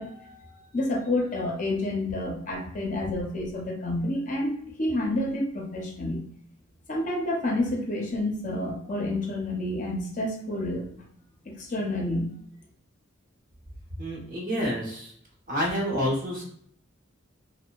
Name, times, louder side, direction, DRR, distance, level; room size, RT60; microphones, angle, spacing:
voice 1, 0.0-4.5 4.8-6.2 6.9-10.8 11.5-12.3, left 1 dB, 40° left, 0 dB, 0.6 m, -29 dB
voice 2, 14.0-15.1 15.5-16.4, equal, 45° right, -3 dB, 0.9 m, -28 dB
2.7 x 2.1 x 2.3 m, 0.65 s
head